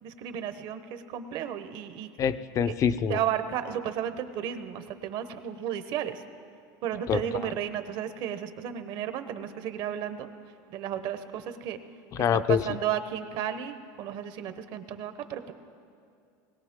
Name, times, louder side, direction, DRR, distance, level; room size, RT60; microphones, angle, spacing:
voice 1, 0.0-2.1 2.7-2.8 3.1-6.2 6.8-10.3 10.7-11.8 12.3-15.5, right 9 dB, 55° right, 10 dB, 0.9 m, -33 dB
voice 2, 2.2-3.2 7.1-7.2 12.1-12.6, left 7 dB, 35° left, 13 dB, 0.5 m, -25 dB
20.0 x 17.5 x 3.7 m, 2.4 s
supercardioid pair, 135°, 9 cm